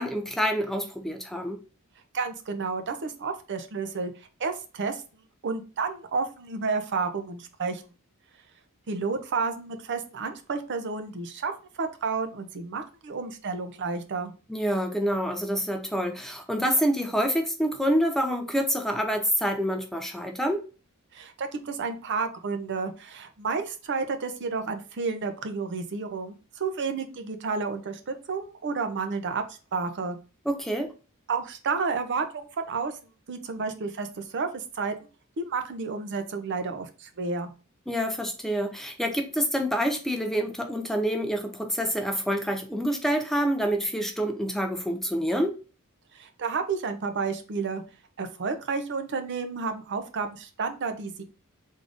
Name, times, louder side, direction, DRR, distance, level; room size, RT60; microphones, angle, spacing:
voice 1, 0.0-1.6 14.5-20.6 30.5-30.9 37.9-45.5, equal, ahead, 0.4 m, -27 dB
voice 2, 2.1-5.0 5.4-7.8 8.9-11.5 11.8-14.3 21.1-29.4 29.7-30.2 31.3-32.9 33.3-35.0 35.4-37.5 46.1-47.8 48.2-51.2, right 4 dB, 55° right, 0.5 m, -31 dB
3.6 x 2.5 x 3.4 m
head